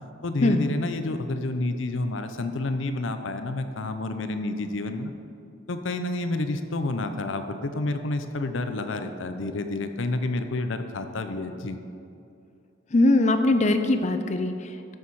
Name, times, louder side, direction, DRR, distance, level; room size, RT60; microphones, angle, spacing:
voice 1, 0.2-5.1 5.7-11.8, left 2 dB, 75° left, 8 dB, 0.7 m, -29 dB
voice 2, 12.9-15.0, left 2 dB, 35° left, 8 dB, 0.5 m, -22 dB
12.5 x 6.4 x 4.8 m, 2.6 s
head